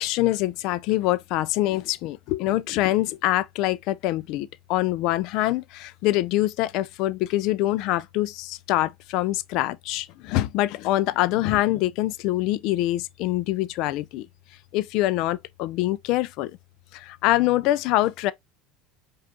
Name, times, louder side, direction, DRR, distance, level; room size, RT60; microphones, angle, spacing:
voice 1, 0.0-14.3 14.7-16.5 16.9-18.3, left 16 dB, 60° left, 0.3 m, -24 dB
5.0 x 2.4 x 2.7 m
supercardioid pair, 135°, 0 cm